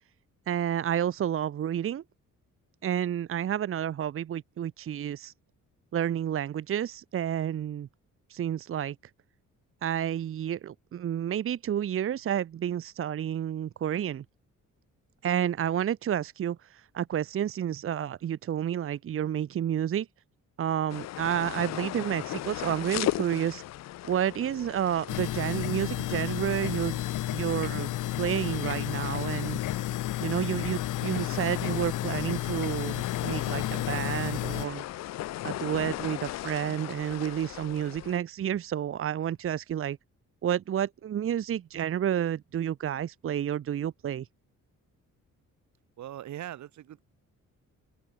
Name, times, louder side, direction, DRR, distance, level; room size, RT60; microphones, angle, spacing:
voice 1, 0.5-2.0 2.8-5.3 5.9-7.9 8.3-9.0 9.8-14.2 15.2-20.1 20.6-23.6 24.0-27.0 27.3-27.9 28.2-29.6 30.2-34.8 35.4-40.0 40.4-44.3, right 10 dB, 45° right, 1.0 m, -30 dB
sound 1, 20.9-38.2, left 14 dB, 60° left, 0.5 m, -38 dB
sound 2, 25.1-34.7, left 13 dB, 85° left, 1.7 m, -32 dB
voice 2, 46.0-47.0, right 12 dB, 70° right, 1.6 m, -40 dB
wide cardioid pair, 175°, 30 cm